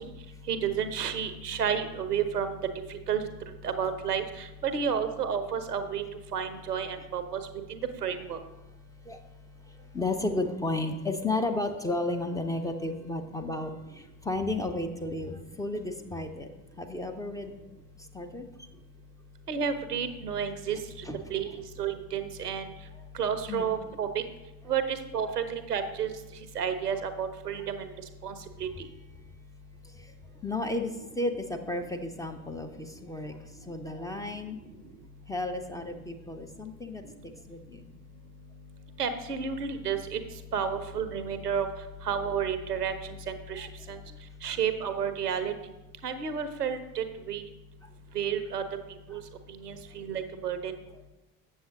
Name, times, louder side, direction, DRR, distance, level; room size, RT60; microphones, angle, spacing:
voice 1, 0.5-2.6 2.9-3.3 3.6-6.0 6.3-7.4 7.7-8.4 19.5-20.8 21.3-22.7 23.2-24.2 24.7-26.1 26.6-27.8 28.2-28.7 39.0-40.2 40.5-41.7 42.1-42.9 43.3-43.7 44.4-45.5 46.0-47.4 48.1-48.6 49.1-49.2 49.6-50.7, right 7 dB, 85° right, 10 dB, 0.7 m, -31 dB
voice 2, 9.7-16.5 16.8-17.5 18.0-18.5 21.0-21.2 23.0-23.1 23.5-23.6 25.3-25.4 29.9-30.1 30.4-34.6 35.3-37.0 37.3-37.9 44.1-44.2 49.1-49.2, left 2 dB, 10° left, 4 dB, 0.5 m, -33 dB
7.5 x 7.1 x 3.7 m, 1.0 s
figure-of-eight pair, 60°, 46 cm